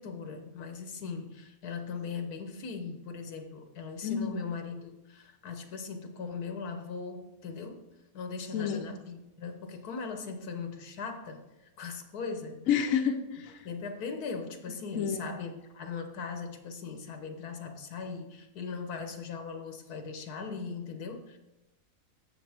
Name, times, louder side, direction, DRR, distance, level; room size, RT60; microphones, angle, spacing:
voice 1, 0.0-7.8 8.1-12.7 13.6-21.4, left 5 dB, 80° left, 6 dB, 1.5 m, -39 dB
voice 2, 4.0-4.3 8.5-8.8 12.7-13.6 14.9-15.3, left 7 dB, 65° left, 4 dB, 1.2 m, -29 dB
14.5 x 6.8 x 3.5 m, 0.97 s
omnidirectional pair, 1.6 m